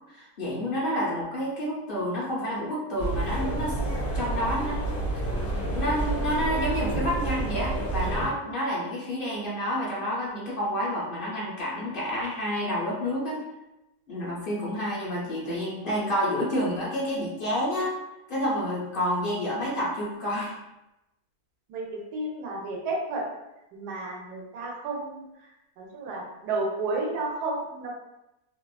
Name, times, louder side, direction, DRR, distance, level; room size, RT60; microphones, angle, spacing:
voice 1, 0.0-3.8 4.1-4.8 5.7-13.4 14.1-17.9 18.3-20.5, equal, 55° left, -6 dB, 0.6 m, -29 dB
sound 1, 3.0-8.3, right 2 dB, 15° left, 1.1 m, -29 dB
voice 2, 21.7-23.2 23.7-25.2 25.8-27.9, right 2 dB, 85° right, -2 dB, 1.2 m, -32 dB
2.8 x 2.3 x 2.3 m, 0.93 s
omnidirectional pair, 1.7 m